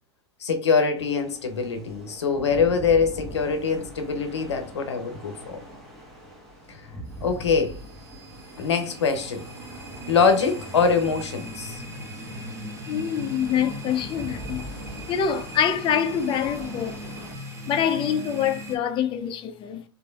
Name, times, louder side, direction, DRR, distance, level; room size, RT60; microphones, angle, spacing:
voice 1, 0.4-5.6 7.2-7.8 8.6-9.5 10.1-11.8, left 5 dB, 90° left, 0.7 m, -23 dB
sound 1, 1.0-17.3, equal, 5° left, 1.0 m, -42 dB
sound 2, 7.1-18.8, equal, 20° right, 0.7 m, -39 dB
voice 2, 12.9-14.6 15.1-16.9 17.7-19.8, left 8 dB, 35° left, 0.4 m, -25 dB
3.0 x 2.6 x 2.3 m
hypercardioid pair, 95°, 14 cm